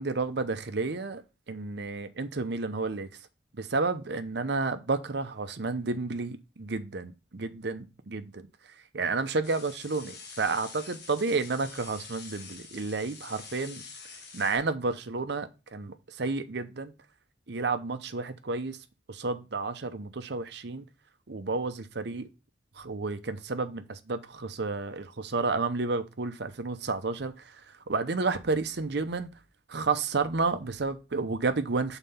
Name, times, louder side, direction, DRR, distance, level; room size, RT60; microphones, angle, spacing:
voice 1, 0.0-3.3 3.5-13.8 14.1-16.9 17.5-20.9 21.3-22.3 22.7-29.3 29.7-32.0, right 3 dB, 65° right, 0.7 m, -31 dB
sound 1, 9.4-14.6, left 5 dB, 60° left, 1.4 m, -46 dB
5.6 x 4.0 x 5.6 m
head